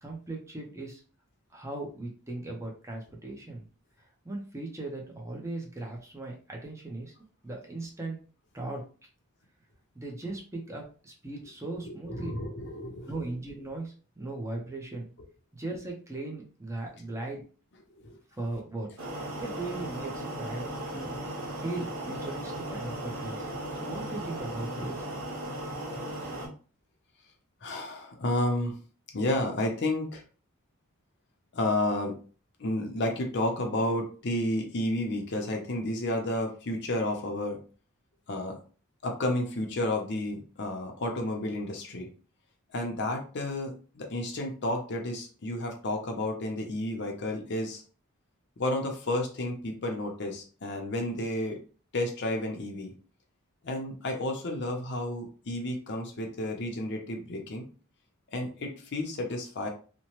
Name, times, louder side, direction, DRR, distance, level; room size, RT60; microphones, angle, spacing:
voice 1, 0.0-1.0 1.5-3.6 4.2-7.1 7.4-8.2 8.5-8.9 10.0-12.4 13.1-15.1 15.5-17.4 18.4-18.9 19.4-21.1 21.6-23.5 23.8-25.1, right 2 dB, 15° right, -1 dB, 0.6 m, -38 dB
voice 2, 12.1-13.1 18.0-18.2 23.9-24.0 27.6-28.8 29.1-30.2 31.5-32.2 32.6-37.6 38.3-38.6 39.0-42.1 42.7-47.8 48.6-51.6 51.9-52.9 53.6-57.6 58.3-59.7, left 1 dB, 55° left, 2 dB, 0.7 m, -31 dB
sound 1, 19.0-26.5, right 1 dB, 70° right, 1.2 m, -36 dB
2.9 x 2.1 x 2.9 m, 0.38 s
head